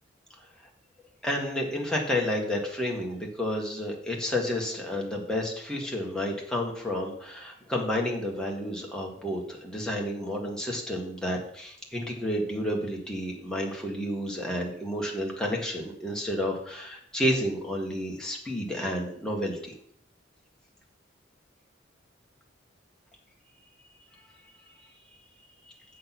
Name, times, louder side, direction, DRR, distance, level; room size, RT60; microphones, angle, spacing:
voice 1, 1.2-19.7, left 1 dB, 5° left, -1 dB, 1.7 m, -30 dB
7.7 x 6.6 x 6.1 m, 0.67 s
head